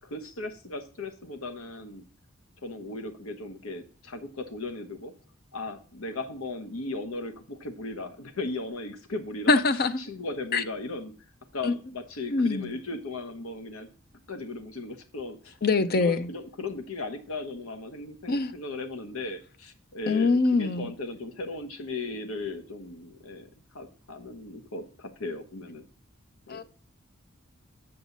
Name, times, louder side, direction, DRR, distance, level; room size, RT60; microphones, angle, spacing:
voice 1, 0.0-2.0 2.6-5.1 5.5-9.5 10.0-11.1 11.5-13.9 14.3-15.6 15.9-23.5 23.7-25.9 26.5-26.6, left 2 dB, 85° left, 1.2 m, -37 dB
voice 2, 9.5-10.0 10.5-10.6 11.6-11.7 12.3-12.7 15.6-16.3 18.3-18.5 20.1-20.9 26.5-26.6, left 3 dB, 45° left, 0.6 m, -24 dB
7.7 x 7.1 x 4.0 m
head